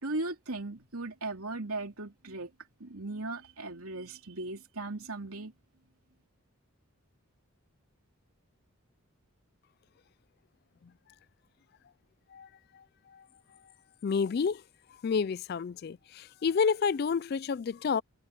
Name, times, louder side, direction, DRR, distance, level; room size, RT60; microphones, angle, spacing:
voice 1, 0.0-2.5 2.8-5.5, right 2 dB, 90° right, 3.1 m, -37 dB
voice 2, 14.0-14.6 15.0-18.0, left 6 dB, 45° left, 0.3 m, -29 dB
head